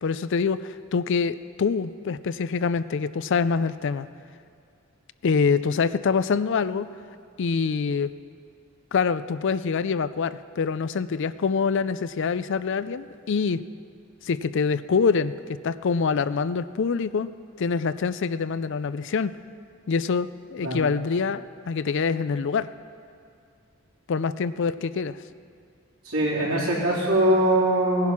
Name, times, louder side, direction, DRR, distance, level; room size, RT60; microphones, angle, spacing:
voice 1, 0.0-4.1 5.2-6.9 7.4-8.1 8.9-13.6 14.2-15.3 15.6-17.3 17.6-19.3 19.9-22.7 24.1-25.2, left 5 dB, 60° left, 15 dB, 0.4 m, -25 dB
voice 2, 26.0-28.1, right 1 dB, 85° right, -5 dB, 3.9 m, -22 dB
18.0 x 10.5 x 5.9 m, 2.3 s
head